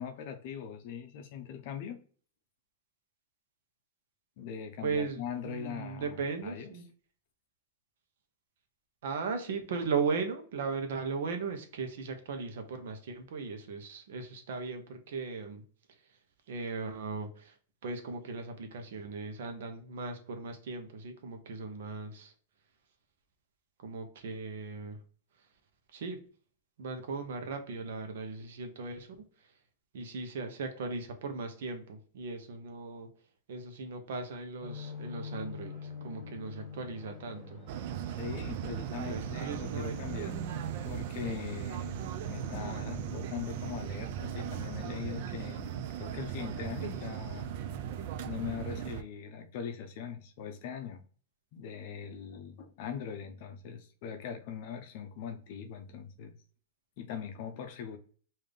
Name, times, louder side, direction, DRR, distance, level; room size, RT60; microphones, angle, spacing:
voice 1, 0.0-2.0 4.4-6.7 38.1-40.5 40.8-42.0 42.3-47.6 48.2-51.0 51.5-56.3 57.0-58.0, left 8 dB, 45° left, 0.6 m, -41 dB
voice 2, 4.8-6.8 9.0-15.6 16.5-17.5 17.8-22.3 23.8-25.0 25.9-26.2 26.8-29.1 29.9-33.1 33.5-37.6 38.9-40.3, right 4 dB, 65° right, 0.8 m, -37 dB
sound 1, 34.6-44.8, left 3 dB, 5° right, 1.1 m, -47 dB
sound 2, 37.7-49.0, right 9 dB, 45° right, 0.3 m, -38 dB
3.4 x 2.7 x 3.7 m
supercardioid pair, 160°, 0 cm